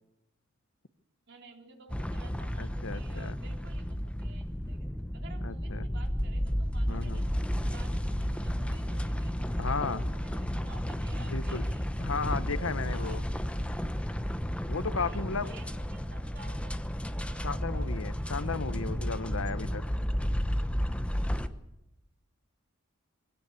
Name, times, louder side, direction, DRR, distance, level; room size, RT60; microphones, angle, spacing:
voice 1, 1.3-4.8 5.1-7.2 7.6-11.9 12.3-13.4 14.9-16.8 17.2-17.6, right 3 dB, 60° right, 3 dB, 3.6 m, -53 dB
sound 1, 1.9-21.5, equal, 5° left, 0.9 m, -32 dB
voice 2, 2.6-3.4 5.4-5.9 6.9-7.2 9.6-10.0 11.3-11.6 12.0-13.2 14.7-15.5 17.4-19.9, left 4 dB, 75° left, 14 dB, 1.0 m, -34 dB
23.0 x 16.5 x 8.3 m, 0.91 s
head